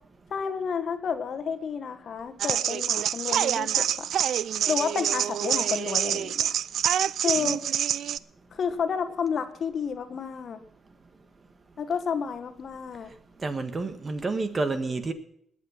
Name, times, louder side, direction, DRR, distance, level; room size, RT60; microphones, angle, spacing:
voice 1, 0.3-4.1 4.7-6.5 7.2-7.6 8.5-10.6 11.8-13.1, left 6 dB, 55° left, 9 dB, 1.4 m, -30 dB
sound 1, 2.4-8.2, right 10 dB, 70° right, 0.4 m, -26 dB
voice 2, 13.4-15.1, right 3 dB, 30° right, 10 dB, 1.5 m, -29 dB
20.0 x 7.7 x 5.6 m, 0.71 s
cardioid pair, 90°, 0 cm